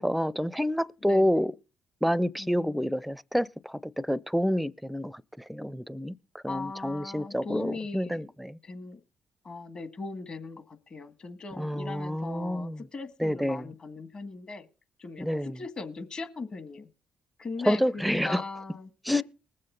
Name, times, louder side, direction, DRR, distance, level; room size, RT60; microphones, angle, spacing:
voice 1, 0.0-1.5 2.0-5.2 5.5-6.1 6.4-8.6 11.5-12.8 13.2-13.7 15.2-15.6 17.7-18.4 19.1-19.2, equal, ahead, 0.5 m, -28 dB
voice 2, 1.0-1.5 2.4-2.9 6.5-8.3 8.6-9.0 9.5-14.6 15.0-16.9 17.4-19.2, left 4 dB, 45° left, 1.8 m, -38 dB
20.0 x 7.6 x 3.9 m
supercardioid pair, 60°, 2 cm